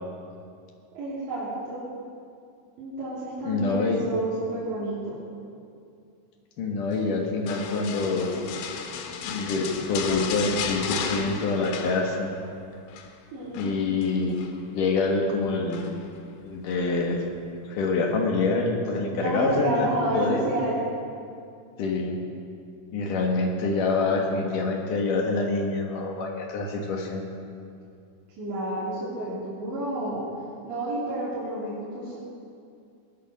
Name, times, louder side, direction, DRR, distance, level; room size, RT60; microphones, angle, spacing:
voice 1, 0.9-1.8 2.8-5.2 13.3-13.6 19.2-20.8 28.4-30.2 30.6-32.2, right 2 dB, 70° right, -9 dB, 5.2 m, -30 dB
voice 2, 3.4-4.0 6.6-8.4 9.2-12.4 13.5-14.3 14.7-15.9 16.4-17.2 17.7-19.9 20.1-20.4 21.8-22.2 22.9-27.3, left 3 dB, 60° left, 1 dB, 2.4 m, -26 dB
sound 1, 7.5-12.5 12.7-13.1 13.5-14.6 15.7-16.2 16.7-16.8, left 7 dB, 85° left, 3.4 m, -34 dB
20.0 x 11.0 x 6.2 m, 2.4 s
omnidirectional pair, 5.4 m